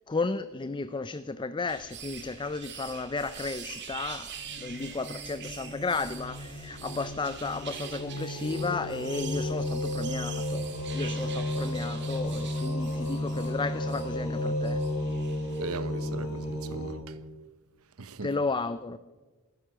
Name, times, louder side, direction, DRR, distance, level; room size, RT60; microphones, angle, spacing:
voice 1, 0.0-4.3 4.6-10.7 10.9-14.8 18.2-19.0, left 3 dB, 20° left, 0.4 m, -33 dB
sound 1, 1.7-15.8, right 7 dB, 55° right, 2.3 m, -44 dB
sound 2, 4.4-16.9, left 1 dB, 75° left, 4.0 m, -33 dB
voice 2, 15.6-17.1 18.0-18.3, right 3 dB, 85° right, 1.0 m, -38 dB
15.5 x 12.5 x 7.4 m
head